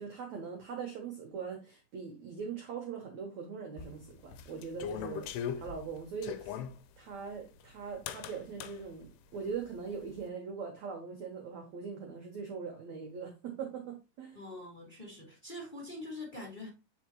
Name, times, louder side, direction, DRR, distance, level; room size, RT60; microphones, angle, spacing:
voice 1, 0.0-6.6 7.0-14.4, right 6 dB, 75° right, 1.7 m, -41 dB
sound 1, 3.8-6.8 8.1-8.8, left 8 dB, 85° left, 2.5 m, -39 dB
voice 2, 14.3-16.7, left 2 dB, 50° left, 0.5 m, -44 dB
8.3 x 5.1 x 3.0 m
omnidirectional pair, 5.0 m